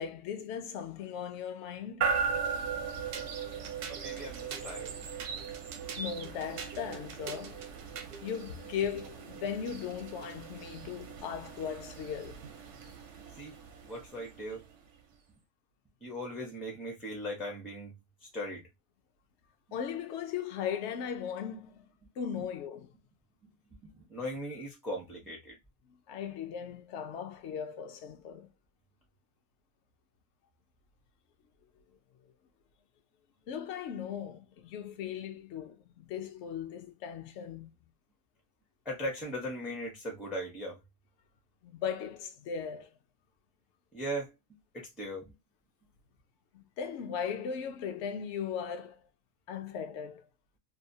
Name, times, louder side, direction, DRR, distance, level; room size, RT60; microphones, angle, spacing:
voice 1, 0.0-2.1 6.0-7.6 8.2-12.4 19.7-21.9 22.2-22.9 26.1-28.5 33.5-37.7 41.6-42.9 46.5-49.0 49.5-50.3, left 7 dB, 70° left, 0.7 m, -38 dB
sound 1, 2.0-15.0, right 6 dB, 65° right, 0.7 m, -38 dB
sound 2, 3.1-8.3, right 6 dB, 85° right, 1.1 m, -45 dB
voice 2, 3.9-4.9 13.3-13.6 13.8-14.6 16.0-17.9 18.2-18.7 23.4-23.5 23.8-25.6 38.8-40.8 43.9-44.3 44.7-45.3, equal, ahead, 0.4 m, -39 dB
2.7 x 2.2 x 2.6 m
omnidirectional pair, 1.6 m